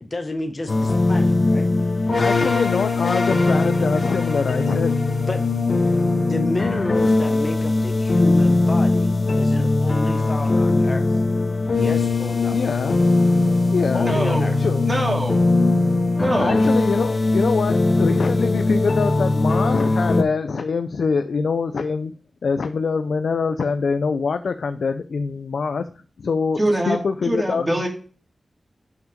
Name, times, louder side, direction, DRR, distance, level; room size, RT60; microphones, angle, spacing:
voice 1, 0.0-1.7 5.3-5.4 6.2-11.2 11.8-12.6 13.9-14.6, left 2 dB, 35° left, 5 dB, 0.8 m, -30 dB
sound 1, 0.7-20.2, left 2 dB, 55° left, 1.1 m, -20 dB
voice 2, 2.2-5.0 10.7-11.0 12.5-13.0 13.7-14.1 14.6-14.9 16.4-22.1 22.4-25.9 26.2-26.6 26.9-27.7, left 5 dB, 85° left, 9 dB, 0.4 m, -24 dB
voice 3, 14.0-14.5 14.9-15.4 16.2-16.6 26.6-27.0 27.2-27.9, right 1 dB, 25° right, -1 dB, 2.4 m, -23 dB
5.9 x 5.8 x 5.1 m, 0.40 s
wide cardioid pair, 105°, 0 cm